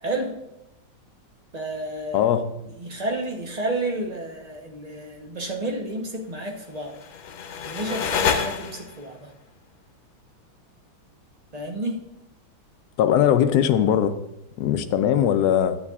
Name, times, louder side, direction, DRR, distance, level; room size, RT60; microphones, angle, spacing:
voice 1, 0.0-0.4 1.5-7.0 7.6-9.3 11.5-12.1, right 1 dB, 45° right, 2 dB, 0.5 m, -31 dB
voice 2, 2.1-2.4 13.0-14.1 14.6-15.8, left 10 dB, 70° left, 9 dB, 1.0 m, -20 dB
sound 1, 6.8-9.1, left 6 dB, 90° left, 1.6 m, -28 dB
11.0 x 9.4 x 2.4 m, 0.87 s
omnidirectional pair, 2.2 m